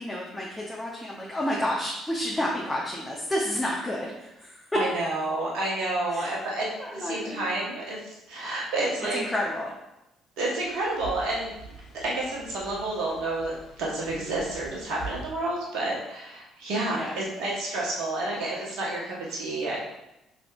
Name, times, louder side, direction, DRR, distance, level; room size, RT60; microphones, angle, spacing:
voice 1, 0.0-4.7 6.1-6.3 6.8-7.5 9.1-9.7 16.9-17.2, left 1 dB, 15° left, -4 dB, 0.9 m, -30 dB
voice 2, 4.7-6.7 6.9-9.2 10.4-11.5 12.0-19.8, right 2 dB, 60° right, -4 dB, 1.2 m, -30 dB
sound 1, 10.5-15.3, right 3 dB, 65° left, 1.1 m, -44 dB
5.9 x 3.4 x 2.5 m, 0.90 s
figure-of-eight pair, 45°, 0 cm